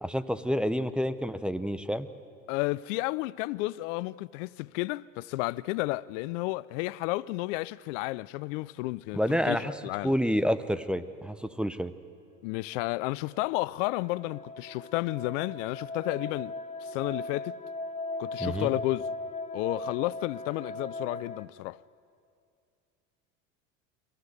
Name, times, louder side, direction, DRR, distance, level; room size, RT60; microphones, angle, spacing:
voice 1, 0.0-2.1 9.1-9.7 10.0-11.9 18.4-18.7, equal, ahead, 0.8 m, -28 dB
voice 2, 2.5-10.1 12.4-16.5 16.8-17.6 18.2-19.1 19.5-21.8, left 20 dB, 70° left, 0.5 m, -32 dB
sound 1, 13.2-21.4, left 2 dB, 20° left, 1.0 m, -38 dB
23.5 x 16.0 x 8.0 m
hypercardioid pair, 80°, 39 cm